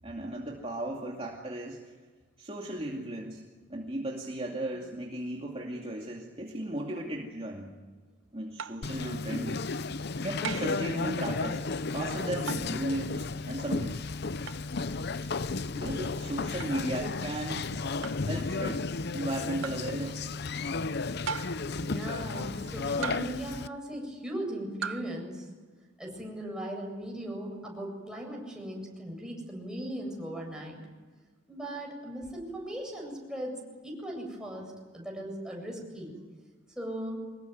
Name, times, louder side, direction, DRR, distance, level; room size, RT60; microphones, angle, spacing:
voice 1, 0.0-1.9 2.4-3.4 3.7-7.7 8.3-9.6 10.2-11.7 11.9-14.0 15.2-15.3 15.8-17.7 18.3-18.9 19.1-20.2, right 1 dB, 30° right, -1 dB, 2.5 m, -36 dB
sound 1, 8.6-8.9 10.4-10.8 12.5-12.8 14.5-14.7 16.6-16.8 18.0-18.3 19.6-19.9 21.3-21.7 23.0-23.5 24.8-25.1, right 6 dB, 85° right, 0.7 m, -37 dB
Conversation, 8.8-23.7, left 3 dB, 55° left, 0.7 m, -33 dB
voice 2, 21.7-25.5 26.0-30.8 31.5-36.1 36.7-37.2, right 1 dB, 5° right, -1 dB, 8.0 m, -38 dB
25.0 x 21.0 x 9.5 m, 1.4 s
head